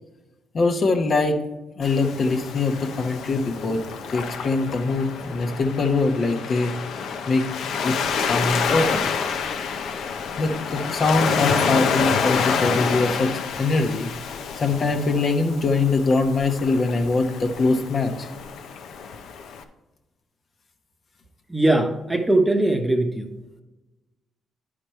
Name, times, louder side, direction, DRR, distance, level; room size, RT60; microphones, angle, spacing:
voice 1, 0.5-1.4 1.8-3.8 4.1-6.7 7.3-7.5 7.8-9.1 10.4-14.1 14.6-18.3, left 3 dB, 45° left, 5 dB, 1.0 m, -23 dB
Waves surf, 1.8-19.6, left 6 dB, 75° left, 0.7 m, -28 dB
voice 2, 21.5-23.3, right 2 dB, 10° right, 4 dB, 1.0 m, -20 dB
10.0 x 5.0 x 4.5 m, 1.1 s
cardioid pair, 90°, 0 cm